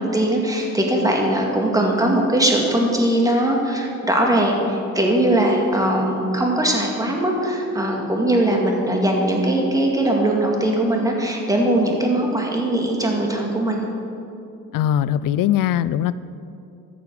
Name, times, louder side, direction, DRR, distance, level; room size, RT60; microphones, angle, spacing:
voice 1, 0.0-13.9, right 1 dB, 10° right, 0 dB, 2.1 m, -20 dB
voice 2, 14.7-16.1, left 11 dB, 70° left, 16 dB, 0.5 m, -20 dB
14.5 x 7.0 x 6.5 m, 2.7 s
cardioid pair, 115°, 34 cm